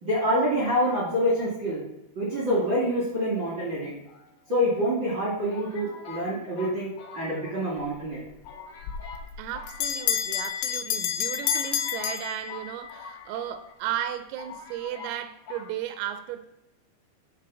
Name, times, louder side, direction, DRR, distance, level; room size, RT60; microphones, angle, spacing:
voice 1, 0.0-1.8 2.1-4.0 4.5-6.9 7.1-8.2, equal, 60° right, 1.1 m, -26 dB
sound 1, 4.0-4.8 5.5-7.8 8.1-8.2 8.4-9.3 9.5-10.5 11.1-11.2 11.4-13.7 14.0-14.1 14.4-15.2 15.5-15.7, left 5 dB, 70° left, 1.6 m, -44 dB
Bell, 8.8-12.9, left 9 dB, 85° left, 3.3 m, -29 dB
voice 2, 9.4-16.5, right 11 dB, 85° right, 3.2 m, -35 dB
10.0 x 3.8 x 6.1 m
omnidirectional pair, 5.9 m